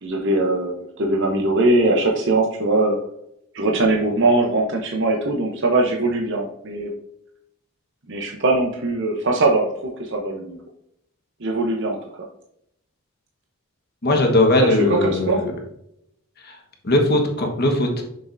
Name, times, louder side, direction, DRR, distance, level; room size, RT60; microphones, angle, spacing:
voice 1, 0.0-3.0 3.5-6.9 8.1-9.7 10.0-10.6 11.4-12.2 14.6-15.4, right 2 dB, 55° right, 0 dB, 0.8 m, -21 dB
voice 2, 14.0-15.5 16.5-16.6 16.8-18.0, left 1 dB, 45° left, 2 dB, 1.3 m, -19 dB
6.5 x 6.5 x 2.6 m, 0.76 s
head